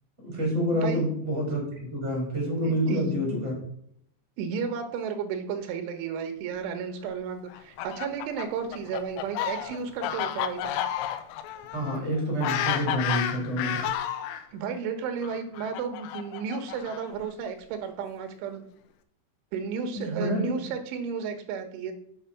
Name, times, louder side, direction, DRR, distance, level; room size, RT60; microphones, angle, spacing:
voice 1, 0.2-3.5 11.7-13.8 19.9-20.5, equal, 15° right, -2 dB, 4.7 m, -28 dB
voice 2, 0.7-1.1 2.6-3.2 4.4-10.8 14.5-18.6 19.5-21.9, right 6 dB, 75° right, 6 dB, 3.6 m, -33 dB
Fowl, 7.5-14.4 15.2-17.3, left 10 dB, 90° left, 3.5 m, -31 dB
8.1 x 6.8 x 5.9 m, 0.68 s
omnidirectional pair, 5.9 m